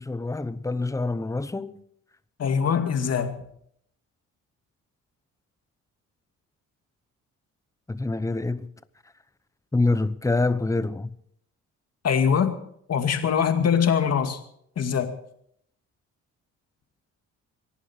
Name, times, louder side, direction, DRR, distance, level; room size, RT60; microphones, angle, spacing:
voice 1, 0.0-1.8 7.9-8.7 9.7-11.1, left 3 dB, 10° left, 0.9 m, -26 dB
voice 2, 2.4-3.3 12.0-12.6 12.9-14.4 14.8-15.1, left 7 dB, 55° left, 2.3 m, -22 dB
26.5 x 11.0 x 4.5 m
cardioid pair, 90°, 30 cm